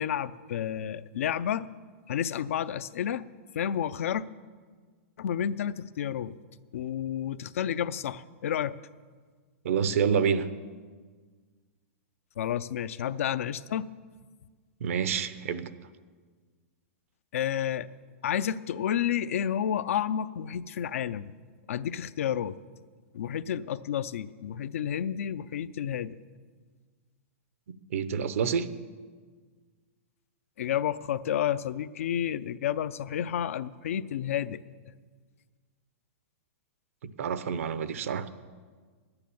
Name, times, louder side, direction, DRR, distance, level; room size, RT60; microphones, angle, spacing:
voice 1, 0.0-1.7 2.1-3.2 3.5-4.2 5.2-6.3 6.7-8.8 12.4-13.9 17.3-17.9 18.2-21.3 21.7-22.6 23.1-26.2 30.6-34.6, left 9 dB, 75° left, 15 dB, 0.5 m, -30 dB
voice 2, 9.6-10.5 14.8-15.7 27.9-28.7 37.2-38.3, right 7 dB, 75° right, 13 dB, 0.8 m, -27 dB
11.5 x 9.8 x 7.0 m, 1.5 s
hypercardioid pair, 150°, 7 cm